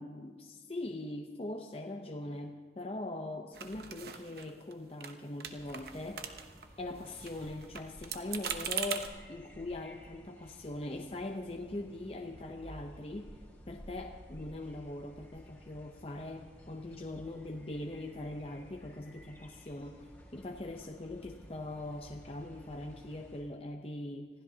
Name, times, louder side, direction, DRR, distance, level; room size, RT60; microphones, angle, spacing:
voice 1, 0.0-6.4 6.8-13.3 13.7-20.0 20.3-24.3, left 2 dB, 30° left, 2 dB, 0.7 m, -41 dB
sound 1, 3.5-4.7 5.0-5.1 5.4-6.7 7.0-9.1, right 8 dB, 55° right, 0.9 m, -40 dB
sound 2, 5.5-23.4, equal, 10° left, 2.8 m, -54 dB
26.0 x 15.5 x 2.8 m, 1.5 s
head